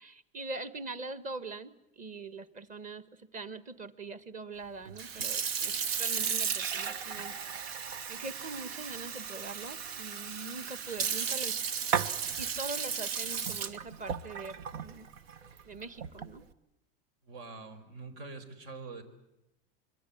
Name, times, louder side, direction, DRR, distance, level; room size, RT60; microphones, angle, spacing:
voice 1, 0.0-3.0 3.3-7.3 8.1-11.6 12.4-15.1 15.6-16.4, right 3 dB, 25° right, 13 dB, 1.5 m, -42 dB
Sink (filling or washing) / Fill (with liquid), 4.9-16.4, right 7 dB, 90° right, 1.5 m, -35 dB
voice 2, 17.2-19.0, right 3 dB, 70° right, 10 dB, 5.0 m, -45 dB
25.5 x 23.0 x 8.6 m, 0.87 s
supercardioid pair, 145°, 29 cm